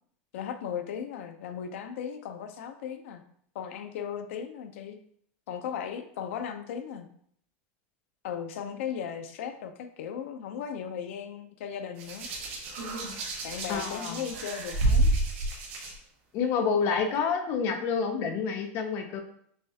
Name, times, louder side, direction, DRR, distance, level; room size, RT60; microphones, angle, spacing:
voice 1, 0.3-3.2 3.5-5.0 5.5-7.1 8.2-12.3 13.4-15.1, left 8 dB, 80° left, 8 dB, 0.5 m, -37 dB
Hands, 12.0-15.9 16.9-17.2, right 2 dB, 80° right, 1.4 m, -29 dB
voice 2, 13.7-14.2 16.3-19.2, left 6 dB, 35° left, 5 dB, 0.6 m, -28 dB
6.3 x 2.3 x 2.7 m, 0.65 s
supercardioid pair, 170°, 7 cm